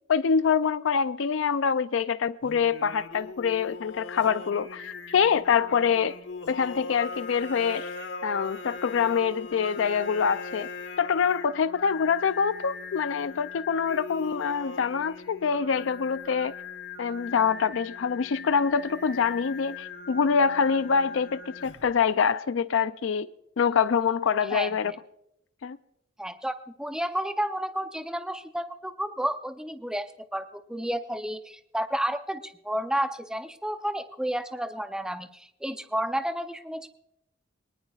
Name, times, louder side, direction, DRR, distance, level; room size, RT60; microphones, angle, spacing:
voice 1, 0.1-6.2 6.5-7.9 8.2-10.7 11.0-16.5 17.0-23.3 23.6-24.9 25.6-25.8, left 6 dB, 80° left, 0.4 m, -25 dB
Singing, 2.4-22.0, left 4 dB, 65° left, 1.2 m, -40 dB
voice 2, 24.4-24.9 26.2-36.9, equal, 5° right, 0.6 m, -31 dB
23.0 x 19.5 x 2.4 m
head